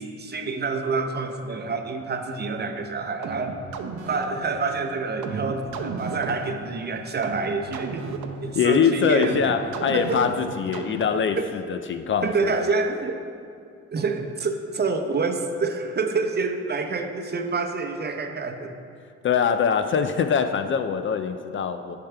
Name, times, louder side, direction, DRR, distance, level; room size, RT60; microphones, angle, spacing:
voice 1, 0.0-3.5 4.1-9.4 9.9-10.3 11.4-11.5 12.2-13.3 13.9-18.7, right 4 dB, 35° right, 5 dB, 0.7 m, -27 dB
sound 1, 3.2-11.4, right 5 dB, 75° right, 0.7 m, -36 dB
voice 2, 8.5-12.5 19.2-22.0, left 7 dB, 40° left, 8 dB, 0.4 m, -23 dB
10.0 x 5.8 x 3.4 m, 2.4 s
cardioid pair, 90°, 30 cm